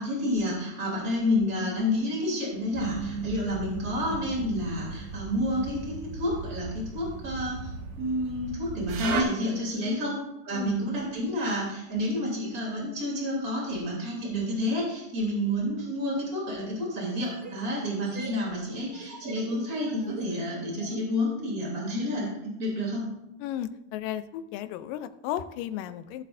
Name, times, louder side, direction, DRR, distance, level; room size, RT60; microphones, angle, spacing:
voice 1, 0.0-7.7 8.0-10.2 10.4-22.3 22.6-23.0, left 1 dB, 25° right, -3 dB, 3.2 m, -29 dB
sound 1, 2.7-9.2, right 4 dB, 80° right, 2.8 m, -36 dB
sound 2, 17.0-21.0, right 3 dB, 55° right, 4.9 m, -44 dB
voice 2, 23.4-26.2, left 11 dB, 85° left, 13 dB, 2.2 m, -34 dB
16.5 x 7.4 x 2.6 m, 0.88 s
omnidirectional pair, 3.9 m